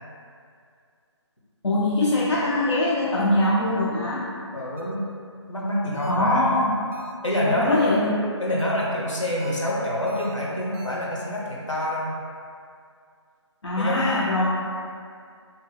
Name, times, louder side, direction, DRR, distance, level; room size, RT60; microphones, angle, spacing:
voice 1, 1.6-4.3 6.1-6.8 7.5-8.4 13.6-14.5, left 1 dB, 65° left, -6 dB, 0.5 m, -22 dB
voice 2, 4.5-5.0 5.5-6.5 7.2-7.8 8.4-12.1 13.8-14.2, left 1 dB, 85° left, -5 dB, 0.9 m, -26 dB
sound 1, 4.8-5.2 5.9-6.4 6.9-7.4 7.7-8.2 8.6-9.0 9.4-11.0, right 2 dB, 30° right, 0.5 m, -45 dB
2.8 x 2.1 x 3.9 m, 2.2 s
figure-of-eight pair, 150°, 15 cm